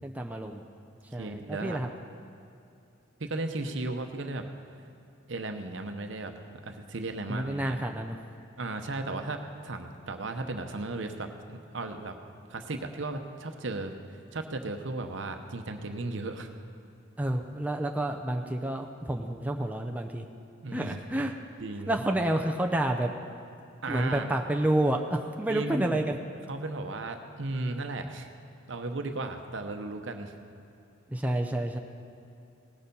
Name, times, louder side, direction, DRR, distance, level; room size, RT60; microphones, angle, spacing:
voice 1, 0.0-0.6 1.1-1.9 7.3-8.2 17.2-20.2 20.7-21.3 21.9-23.1 23.9-26.2 31.1-31.8, right 1 dB, 10° right, 2 dB, 0.5 m, -29 dB
voice 2, 1.2-2.0 3.2-4.4 5.3-6.3 6.6-7.8 8.6-12.2 12.5-13.9 14.3-16.5 20.6-21.0 21.6-22.0 23.8-24.3 25.5-26.0 26.5-28.3 28.7-30.3, right 2 dB, 70° right, 6 dB, 0.8 m, -35 dB
18.0 x 6.7 x 5.4 m, 2.6 s
head